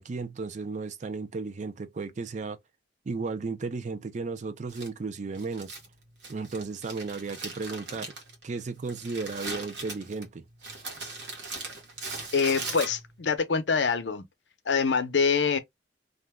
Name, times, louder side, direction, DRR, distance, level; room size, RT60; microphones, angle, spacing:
voice 1, 0.0-2.6 3.1-5.8 6.3-8.1 8.4-10.4, right 4 dB, 45° right, 0.5 m, -34 dB
Crumpling crinkling, 4.7-13.3, right 3 dB, 75° right, 1.1 m, -40 dB
voice 2, 12.3-14.3 14.7-15.6, left 5 dB, 80° left, 0.6 m, -25 dB
2.5 x 2.2 x 3.3 m
head